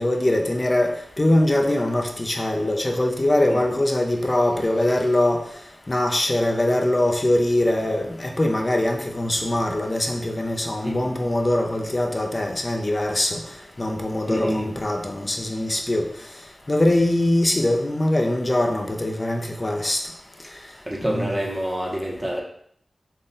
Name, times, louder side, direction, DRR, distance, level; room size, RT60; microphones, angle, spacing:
voice 1, 0.0-5.4 5.9-13.4 13.8-16.1 16.7-20.0 21.1-21.4, left 1 dB, 30° left, 3 dB, 0.5 m, -22 dB
voice 2, 14.2-14.7 20.9-22.4, equal, 15° right, -2 dB, 0.8 m, -27 dB
3.8 x 2.1 x 3.8 m, 0.66 s
wide cardioid pair, 95°, 0 cm